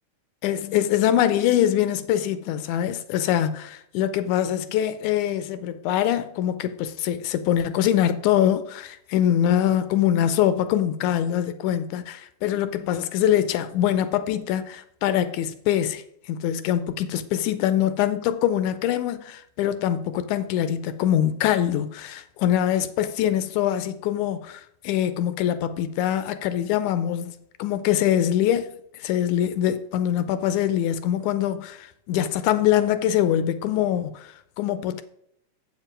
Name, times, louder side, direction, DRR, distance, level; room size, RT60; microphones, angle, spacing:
voice 1, 0.4-35.0, left 11 dB, 80° left, 1.9 m, -24 dB
7.7 x 7.4 x 5.0 m
omnidirectional pair, 3.7 m